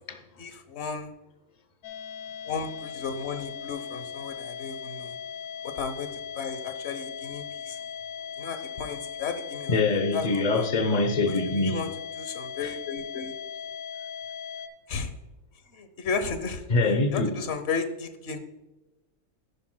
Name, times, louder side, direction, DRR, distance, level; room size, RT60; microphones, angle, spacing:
voice 1, 0.4-1.1 2.4-5.2 5.6-6.1 6.3-7.8 8.4-9.8 10.1-10.7 11.3-11.9 12.2-13.3 14.9-15.1 15.7-16.6 17.1-18.4, left 5 dB, 50° left, 1.2 m, -34 dB
sound 1, 1.8-14.7, left 7 dB, 85° left, 1.4 m, -38 dB
voice 2, 9.7-11.8 12.6-12.7 16.7-17.3, left 3 dB, 30° left, 0.9 m, -24 dB
10.5 x 10.5 x 2.3 m
omnidirectional pair, 1.5 m